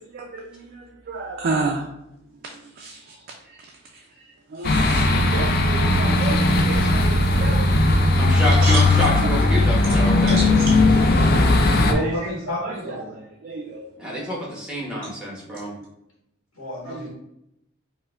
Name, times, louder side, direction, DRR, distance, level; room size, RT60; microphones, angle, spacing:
voice 1, 1.1-1.8 2.8-3.0 4.5-7.7 8.6-8.8 10.2-10.4 11.9-12.0 12.6-12.7 13.4-13.8 16.9-17.1, right 3 dB, 45° right, 0 dB, 0.3 m, -30 dB
sound 1, 4.6-11.9, left 2 dB, 50° left, 0.3 m, -18 dB
voice 2, 8.2-10.4 14.0-15.8, equal, 5° right, -5 dB, 0.9 m, -27 dB
voice 3, 11.6-13.2 16.6-17.1, equal, 90° left, -5 dB, 0.9 m, -30 dB
4.7 x 2.1 x 2.3 m, 0.81 s
head